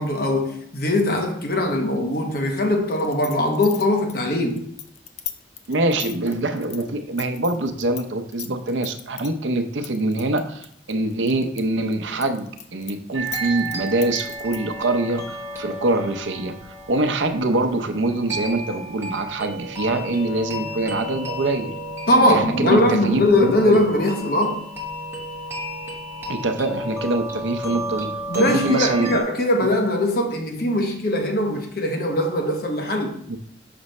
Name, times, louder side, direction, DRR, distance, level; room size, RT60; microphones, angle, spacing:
voice 1, 0.0-4.6 22.1-24.7 28.3-33.1, left 1 dB, 55° left, 0.9 m, -21 dB
sound 1, 2.9-8.0 8.3-9.3 9.8-11.6 11.9-14.7, left 10 dB, 40° left, 0.4 m, -36 dB
voice 2, 5.7-16.5 16.9-21.7 22.2-23.8 26.3-28.1 28.3-29.2 29.6-29.7 33.3-33.4, right 2 dB, 85° right, 0.6 m, -24 dB
sound 2, 13.1-29.2, right 1 dB, 15° right, 1.0 m, -33 dB
6.0 x 3.1 x 5.3 m
head